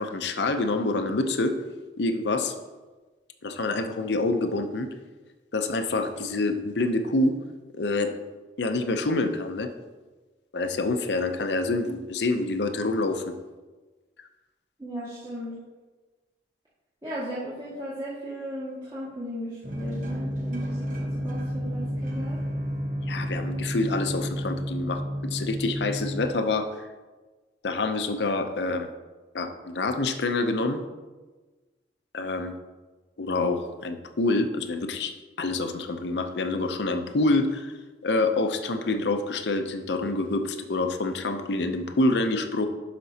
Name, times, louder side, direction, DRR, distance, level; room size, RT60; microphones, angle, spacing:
voice 1, 0.0-1.6 2.0-2.5 3.4-4.9 5.5-7.4 7.7-8.1 8.6-9.7 10.5-13.3 23.1-26.8 27.6-28.9 29.3-30.8 32.1-32.6 33.2-37.7 38.0-42.7, left 2 dB, 80° left, 7 dB, 0.6 m, -27 dB
voice 2, 14.8-15.5 17.0-22.4, equal, 25° right, -11 dB, 2.0 m, -36 dB
sound 1, 19.6-26.3, equal, 45° right, 1.1 m, -31 dB
12.0 x 5.2 x 2.8 m, 1.3 s
head